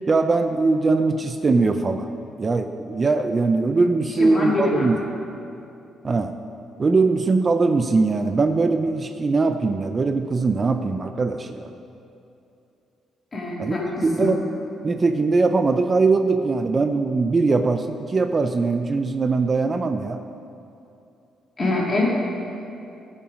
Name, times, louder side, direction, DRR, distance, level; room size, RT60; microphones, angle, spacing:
voice 1, 0.0-2.1 2.4-5.0 6.0-6.4 6.8-11.7 13.6-13.7 14.0-14.4 14.8-20.2, right 3 dB, 35° right, 8 dB, 0.4 m, -21 dB
voice 2, 4.2-4.9 13.3-14.4 21.6-22.1, left 2 dB, 35° left, -4 dB, 2.5 m, -24 dB
14.5 x 5.7 x 5.2 m, 2.7 s
cardioid pair, 90°, 0 cm